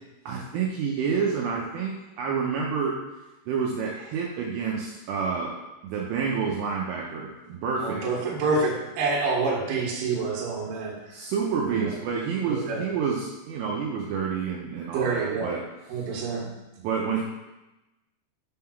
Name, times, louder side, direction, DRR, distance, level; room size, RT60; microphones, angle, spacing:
voice 1, 0.3-3.0 3.5-5.5 5.8-8.0 11.1-15.6 16.8-17.2, right 6 dB, 85° right, -2 dB, 2.5 m, -28 dB
voice 2, 7.8-10.9 11.7-11.9 12.4-12.8 14.9-15.5 15.9-16.5, right 4 dB, 60° right, -3 dB, 2.8 m, -27 dB
8.7 x 3.8 x 5.7 m, 1.0 s
omnidirectional pair, 5.8 m